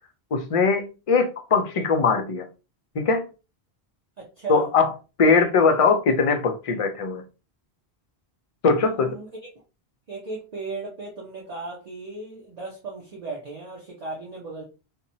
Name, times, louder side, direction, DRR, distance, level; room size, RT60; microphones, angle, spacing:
voice 1, 0.3-2.5 3.0-3.3 4.5-4.9 5.2-7.2 8.6-9.2, left 4 dB, 50° left, 0.4 m, -21 dB
voice 2, 4.2-4.7 8.7-9.3 10.1-14.6, right 3 dB, 45° right, 0.7 m, -36 dB
2.8 x 2.1 x 2.6 m
omnidirectional pair, 1.0 m